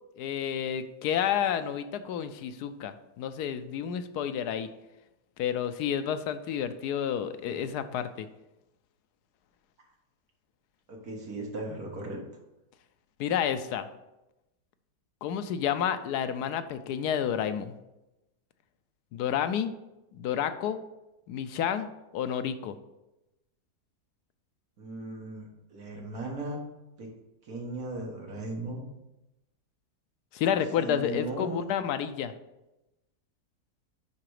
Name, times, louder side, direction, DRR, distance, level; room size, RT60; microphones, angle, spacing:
voice 1, 0.2-4.7 5.4-8.3 13.2-13.9 15.2-17.8 19.1-19.7 20.2-20.8 21.3-21.9 22.1-22.7 30.3-32.3, left 9 dB, 80° left, 10 dB, 1.1 m, -30 dB
voice 2, 10.9-12.2 24.8-26.6 27.0-27.1 27.5-28.8 30.8-31.6, right 2 dB, 65° right, 0 dB, 1.9 m, -37 dB
9.9 x 3.8 x 4.8 m, 0.97 s
omnidirectional pair, 1.7 m